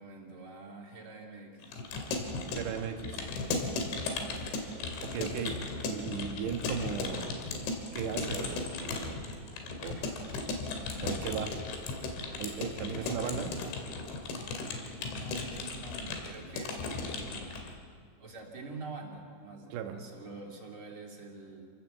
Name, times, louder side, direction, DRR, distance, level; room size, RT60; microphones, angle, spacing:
voice 1, 0.0-1.8 3.8-4.4 12.6-13.4 15.0-17.7 18.2-21.7, right 3 dB, 35° right, 0 dB, 3.0 m, -47 dB
Keyboard (musical) / Computer keyboard, 1.6-17.7, left 3 dB, 90° left, 4.7 m, -36 dB
voice 2, 2.5-3.3 5.0-5.6 5.9-7.6 7.9-9.3 9.8-10.0 11.0-11.6 12.4-13.5 19.7-20.0, right 7 dB, 75° right, 5 dB, 3.7 m, -36 dB
27.5 x 17.5 x 7.3 m, 2.1 s
omnidirectional pair, 5.2 m